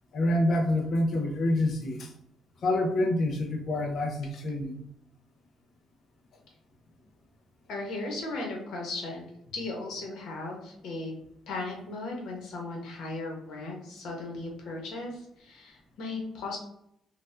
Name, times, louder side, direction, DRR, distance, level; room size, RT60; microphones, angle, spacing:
voice 1, 0.1-2.1 2.6-4.7, left 1 dB, 60° left, 3 dB, 0.7 m, -27 dB
voice 2, 7.7-9.2 9.5-11.1 11.5-16.6, left 2 dB, 80° left, 0 dB, 1.2 m, -36 dB
4.2 x 2.6 x 2.6 m, 0.77 s
cardioid pair, 90°, 0 cm